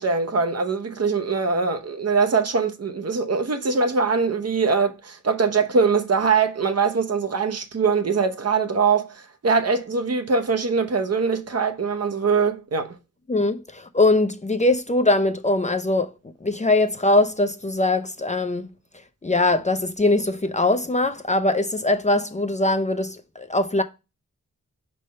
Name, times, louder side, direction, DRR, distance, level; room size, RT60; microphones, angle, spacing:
voice 1, 0.0-13.0, right 5 dB, 55° right, 0.8 m, -22 dB
voice 2, 13.3-16.1 16.4-18.7 19.2-23.8, left 2 dB, 25° left, 0.5 m, -21 dB
5.2 x 3.3 x 5.5 m
wide cardioid pair, 95°, 31 cm